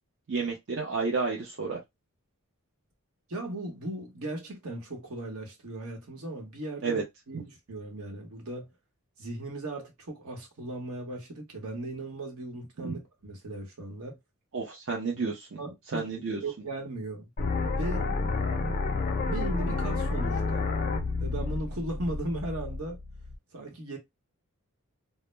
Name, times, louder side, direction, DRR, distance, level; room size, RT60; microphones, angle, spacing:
voice 1, 0.3-1.8 6.8-7.0 7.3-7.4 12.8-13.0 14.5-15.6 15.9-16.4, right 4 dB, 55° right, 0.5 m, -31 dB
voice 2, 3.3-8.7 9.2-14.2 15.1-15.2 15.6-16.1 16.4-17.3 17.8-18.2 19.3-20.7 21.2-23.0 23.5-24.0, right 1 dB, 75° right, 0.9 m, -37 dB
sound 1, 17.4-23.3, left 3 dB, 40° left, 0.4 m, -30 dB
2.1 x 2.0 x 3.1 m
head